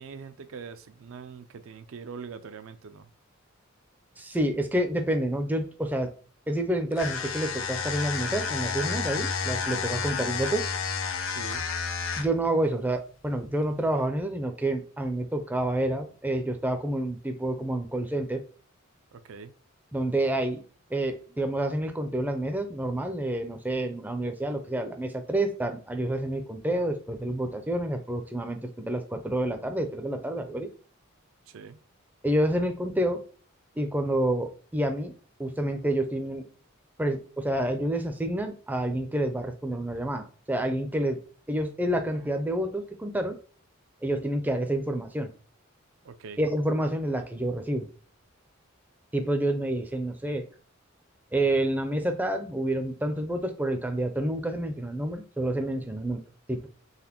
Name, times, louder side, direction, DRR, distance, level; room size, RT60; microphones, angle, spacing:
voice 1, 0.0-3.1 11.2-11.7 19.1-19.5 31.5-31.8 46.0-46.4, right 5 dB, 70° right, 0.4 m, -43 dB
voice 2, 4.2-6.1 6.5-10.6 12.2-18.4 19.9-20.6 20.9-30.7 32.2-33.2 33.8-35.1 35.4-36.5 37.0-41.2 41.5-43.4 44.0-45.3 46.4-47.9 49.1-50.4 51.3-56.2 56.5-56.7, right 1 dB, 10° right, 0.4 m, -28 dB
sound 1, 6.9-12.5, left 5 dB, 65° left, 0.6 m, -31 dB
4.0 x 3.3 x 2.9 m
head